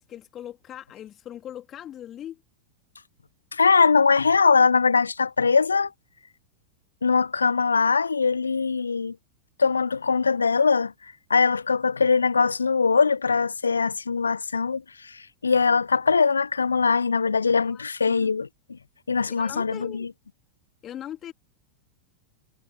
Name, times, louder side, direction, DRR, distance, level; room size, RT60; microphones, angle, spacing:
voice 1, 0.0-2.4 17.6-18.3 19.3-20.1 20.8-21.3, left 11 dB, 30° left, 2.9 m, -40 dB
voice 2, 3.5-5.9 7.0-9.2 9.6-10.9 11.3-18.8 19.1-20.1, left 5 dB, 75° left, 0.4 m, -22 dB
figure-of-eight pair, 90°, 0 cm